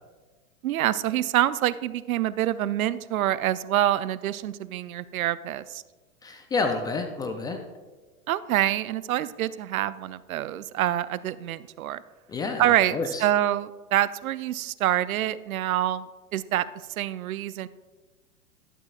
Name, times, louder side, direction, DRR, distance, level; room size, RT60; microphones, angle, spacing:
voice 1, 0.6-5.8 8.3-12.0 12.6-16.7 17.0-17.7, right 13 dB, 80° right, 17 dB, 0.6 m, -26 dB
voice 2, 6.2-7.6 12.3-13.2, left 3 dB, 10° left, 5 dB, 0.3 m, -29 dB
12.0 x 12.0 x 2.4 m, 1.3 s
hypercardioid pair, 115°, 42 cm